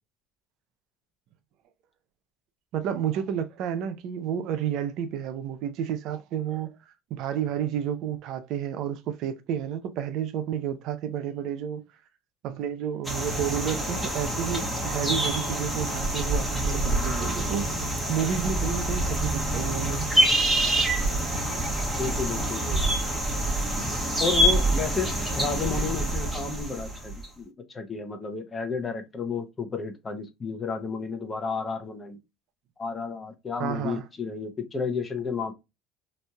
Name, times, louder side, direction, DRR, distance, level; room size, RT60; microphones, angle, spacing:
voice 1, 2.7-11.8 12.4-17.8 18.1-20.1 33.6-34.0, right 9 dB, 60° right, 0.5 m, -31 dB
sound 1, 13.0-27.3, right 1 dB, 5° right, 1.2 m, -26 dB
voice 2, 22.0-22.8 24.2-32.2 32.8-35.5, left 5 dB, 25° left, 0.9 m, -32 dB
3.1 x 2.5 x 2.2 m
supercardioid pair, 85°, 0 cm